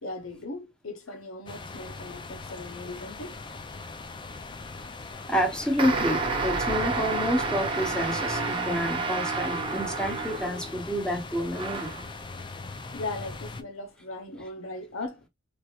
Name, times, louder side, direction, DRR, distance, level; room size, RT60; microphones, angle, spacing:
voice 1, 0.0-3.4 12.9-15.2, left 2 dB, 85° left, 0.8 m, -38 dB
sound 1, 1.5-13.6, left 3 dB, 25° left, 0.4 m, -41 dB
voice 2, 5.3-11.9, equal, 5° left, 1.0 m, -29 dB
sound 2, 5.8-10.8 11.5-12.1, right 3 dB, 25° right, 0.9 m, -30 dB
4.3 x 3.3 x 2.4 m
head